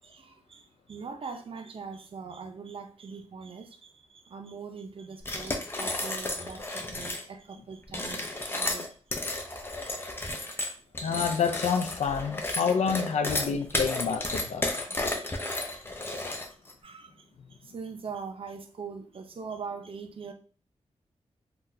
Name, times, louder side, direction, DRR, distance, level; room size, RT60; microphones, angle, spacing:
voice 1, 0.0-8.9 9.3-9.5 9.8-9.9 10.2-10.8 11.0-11.1 15.1-15.5 16.8-20.3, right 5 dB, 55° right, 0.5 m, -42 dB
sound 1, 5.2-7.3 7.8-16.7, left 2 dB, 20° left, 0.6 m, -33 dB
voice 2, 11.0-14.7 15.0-15.1, left 6 dB, 80° left, 0.4 m, -28 dB
3.8 x 2.3 x 2.7 m
wide cardioid pair, 90°, 11 cm